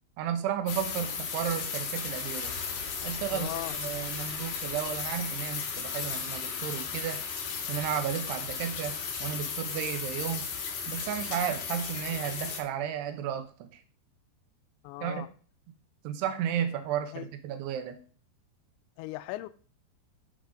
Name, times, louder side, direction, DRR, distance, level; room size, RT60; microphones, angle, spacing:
voice 1, 0.2-2.5 3.0-7.2 7.7-9.0 9.2-10.5 10.9-13.8 15.0-15.3 16.0-18.0, right 9 dB, 75° right, 2.9 m, -33 dB
sound 1, 0.7-12.6, left 6 dB, 70° left, 3.3 m, -35 dB
sound 2, 2.1-6.1, left 2 dB, 45° right, 1.1 m, -52 dB
voice 2, 3.3-3.8 14.8-15.3 17.1-17.3 19.0-19.5, left 17 dB, 85° left, 2.8 m, -38 dB
11.5 x 4.0 x 5.1 m
omnidirectional pair, 5.0 m